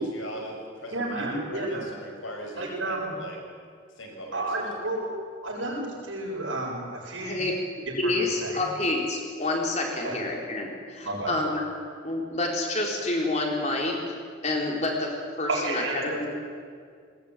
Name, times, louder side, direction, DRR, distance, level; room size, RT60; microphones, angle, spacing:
voice 1, 0.0-3.4 3.9-4.7, equal, 85° left, 1 dB, 6.2 m, -39 dB
voice 2, 0.9-1.9 2.6-3.2 4.3-5.1 5.4-7.4 7.9-8.6 10.0-10.2 11.0-11.3 15.5-16.3, right 2 dB, 85° right, -2 dB, 7.1 m, -31 dB
voice 3, 7.2-7.5 8.0-11.6 12.0-14.0 14.4-16.3, left 2 dB, 35° left, 0 dB, 4.1 m, -28 dB
20.0 x 19.5 x 9.2 m, 2.1 s
head